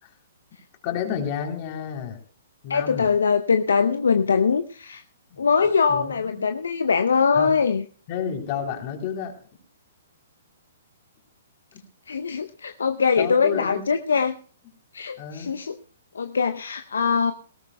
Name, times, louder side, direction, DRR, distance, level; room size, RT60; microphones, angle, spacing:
voice 1, 0.8-2.2 2.6-3.1 5.3-5.4 5.9-6.4 7.3-7.6 8.1-9.3 11.7-11.8 13.2-13.9 15.2-15.5, left 8 dB, 40° left, 2 dB, 3.6 m, -30 dB
voice 2, 2.7-5.0 5.4-7.8 12.1-14.4 14.9-15.7 16.1-17.3, left 5 dB, 70° left, 8 dB, 0.7 m, -22 dB
19.0 x 17.0 x 2.3 m, 0.43 s
figure-of-eight pair, 120°, 0 cm